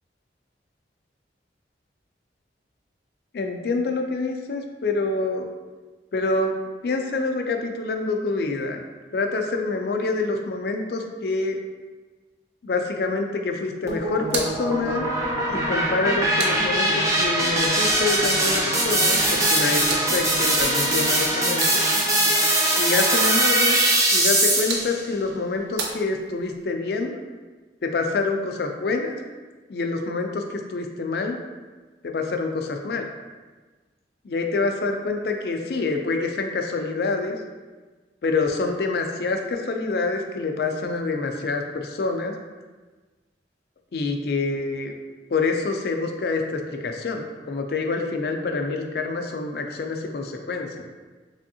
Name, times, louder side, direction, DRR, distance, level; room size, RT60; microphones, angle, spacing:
voice 1, 3.3-5.5 6.1-6.5 6.8-8.9 9.1-11.6 12.6-15.1 15.5-21.8 22.8-23.8 24.1-27.2 27.8-29.2 29.7-31.4 32.0-33.1 34.2-37.4 38.2-42.4 43.9-44.9 45.3-50.8, left 3 dB, 60° left, 4 dB, 0.4 m, -26 dB
sound 1, 13.9-25.0, right 1 dB, 15° right, 0.4 m, -21 dB
sound 2, 14.2-17.3 19.3-22.2 24.2-26.7, right 3 dB, 70° right, 0.5 m, -37 dB
3.5 x 3.4 x 2.7 m, 1.3 s
head